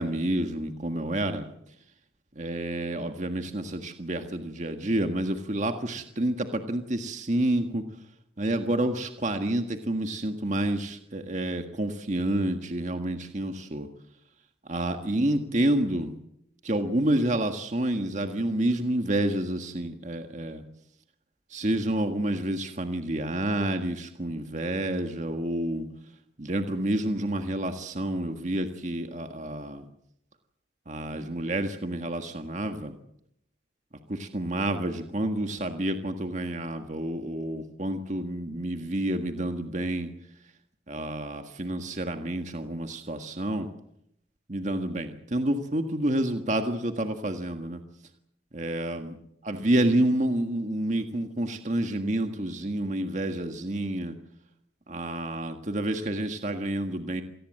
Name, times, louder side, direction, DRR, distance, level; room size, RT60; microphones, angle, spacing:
voice 1, 0.0-1.5 2.3-7.8 8.4-13.9 14.6-16.1 16.6-20.6 21.5-25.9 26.4-29.8 30.9-33.0 34.1-40.1 40.9-43.7 44.5-47.8 48.5-49.2 49.4-54.2 54.9-57.2, right 1 dB, 40° right, 6 dB, 1.7 m, -29 dB
27.0 x 19.0 x 7.7 m, 0.76 s
head